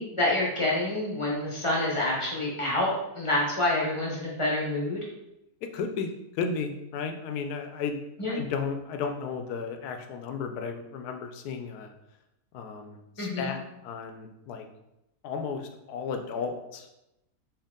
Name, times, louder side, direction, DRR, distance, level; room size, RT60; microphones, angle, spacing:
voice 1, 0.0-5.0 8.2-8.4 13.2-13.5, left 1 dB, 25° left, -4 dB, 0.7 m, -27 dB
voice 2, 5.6-8.0 8.3-11.9 12.5-14.7 15.2-17.0, left 5 dB, 75° left, 6 dB, 1.1 m, -34 dB
4.6 x 2.8 x 3.6 m, 0.89 s
omnidirectional pair, 1.7 m